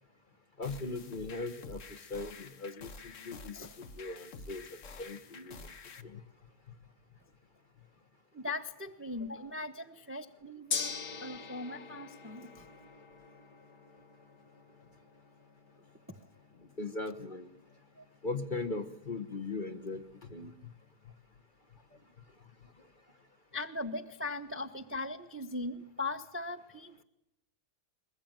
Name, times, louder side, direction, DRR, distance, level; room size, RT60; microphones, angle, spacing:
sound 1, 0.6-6.0, left 4 dB, 50° left, 1.4 m, -49 dB
voice 1, 0.6-5.7 6.0-6.2 16.6-17.5 18.2-20.5 22.8-22.9, left 3 dB, 35° left, 8 dB, 1.1 m, -39 dB
voice 2, 8.3-11.0 11.2-12.7 16.1-16.2 23.5-27.0, left 2 dB, 10° right, 9 dB, 0.8 m, -39 dB
Gong, 10.7-20.9, left 5 dB, 70° left, 2.0 m, -45 dB
22.5 x 21.0 x 9.0 m, 0.84 s
omnidirectional pair, 1.8 m